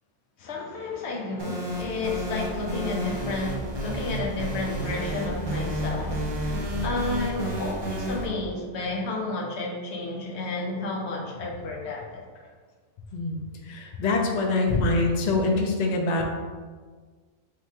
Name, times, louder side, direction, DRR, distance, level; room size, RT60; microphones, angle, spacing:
voice 1, 0.4-12.5, left 2 dB, 60° left, 0 dB, 0.9 m, -32 dB
sound 1, 1.4-8.3, equal, 40° right, 0.3 m, -31 dB
voice 2, 13.6-16.2, left 3 dB, 80° left, 1 dB, 0.3 m, -24 dB
3.0 x 2.9 x 4.5 m, 1.5 s
omnidirectional pair, 1.4 m